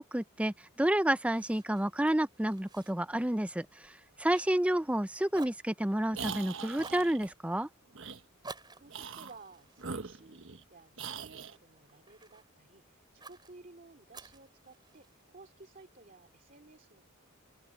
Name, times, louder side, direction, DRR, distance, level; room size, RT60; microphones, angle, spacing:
voice 1, 0.0-3.9 4.2-7.7, right 1 dB, 5° right, 0.5 m, -30 dB
Fire, 1.3-5.0 5.3-6.3 6.7-7.1 8.4-10.9 11.4-12.5 13.2-13.5 14.1-15.2, right 3 dB, 20° right, 4.0 m, -52 dB
sound 1, 6.1-7.3 7.9-8.2 8.9-9.4 9.8-10.6 11.0-11.6, right 5 dB, 65° right, 1.3 m, -41 dB
voice 2, 8.7-10.4 10.7-17.1, right 3 dB, 40° right, 2.6 m, -55 dB
open air
head